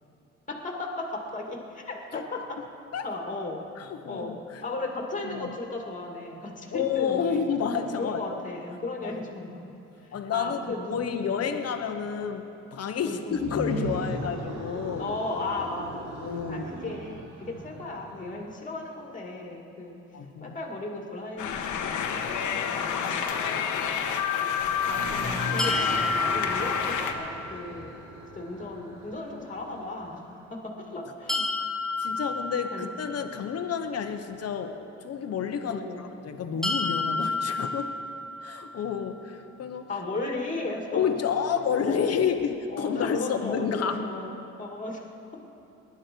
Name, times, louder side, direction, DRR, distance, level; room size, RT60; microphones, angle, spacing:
voice 1, 0.5-2.6 3.0-3.6 4.1-4.4 4.6-7.5 8.0-9.7 10.1-11.5 13.0-13.5 15.0-16.1 16.5-20.0 20.4-23.3 24.9-27.9 28.3-31.5 32.7-32.9 35.6-36.0 39.9-41.1 41.5-42.1 42.7-45.1, left 2 dB, 25° left, 1 dB, 2.3 m, -36 dB
voice 2, 3.8-4.6 5.3-5.6 6.7-8.4 9.0-9.2 10.1-12.4 12.7-15.1 16.2-16.7 20.1-20.6 23.5-23.9 32.0-37.9 38.4-39.9 40.9-44.1, left 7 dB, 55° left, 6 dB, 1.1 m, -30 dB
sound 1, 13.3-18.5 24.7-30.4, right 1 dB, 70° right, 2.6 m, -38 dB
sound 2, 21.4-27.1, left 7 dB, 80° left, 1.2 m, -29 dB
sound 3, 25.6-27.5 31.3-33.4 36.6-38.7, left 3 dB, ahead, 1.3 m, -30 dB
20.0 x 11.0 x 4.6 m, 3.0 s
cardioid pair, 90°, 30 cm